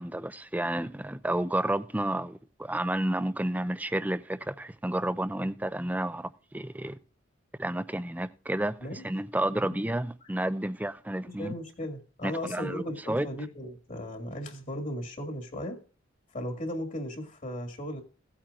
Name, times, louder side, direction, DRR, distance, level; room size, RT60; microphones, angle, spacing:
voice 1, 0.0-7.0 7.6-11.5 12.2-13.3, right 1 dB, 10° right, 0.4 m, -31 dB
voice 2, 11.3-15.8 16.3-18.0, left 1 dB, 40° left, 1.9 m, -36 dB
16.5 x 8.8 x 2.4 m
head